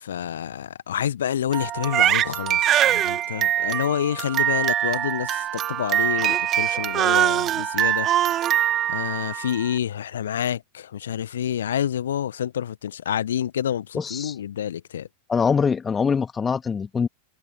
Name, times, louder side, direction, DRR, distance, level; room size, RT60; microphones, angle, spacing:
voice 1, 0.0-8.1 8.4-8.6 8.9-15.1, left 9 dB, 65° left, 1.3 m, -28 dB
Crying sobbing, 1.5-9.7, right 11 dB, 30° right, 2.0 m, -23 dB
voice 2, 13.9-14.3 15.3-17.1, left 6 dB, 20° left, 1.9 m, -23 dB
figure-of-eight pair, 90°, 0 cm